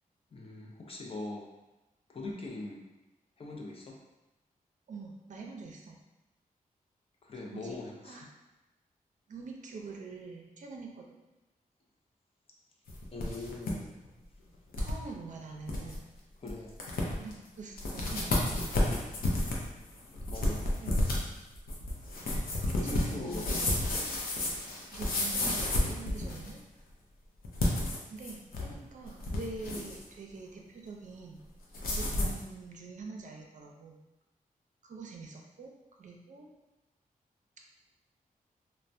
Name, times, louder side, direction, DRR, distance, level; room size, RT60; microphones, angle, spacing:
voice 1, 0.3-1.4 2.1-2.8 3.4-3.9 7.2-8.3 13.1-13.9 16.4-16.7 20.3-20.7 22.8-23.8, left 2 dB, 40° left, -1 dB, 0.5 m, -41 dB
voice 2, 4.9-6.0 7.4-8.3 9.3-11.1 14.8-16.1 17.2-18.9 20.8-21.2 22.6-23.8 24.9-26.6 28.1-31.4 31.9-34.0 34.8-35.7 36.0-36.5, right 4 dB, 60° right, 1 dB, 0.5 m, -45 dB
sound 1, 12.9-13.7 14.0-14.1 14.7-14.9 15.4-15.5 15.7-16.0 16.5-16.6 16.8-17.3 17.8-26.6 27.4-28.7 29.1-30.0 31.7-32.4, left 1 dB, 90° left, 0.5 m, -31 dB
3.2 x 2.1 x 2.5 m, 1.0 s
wide cardioid pair, 120°, 15 cm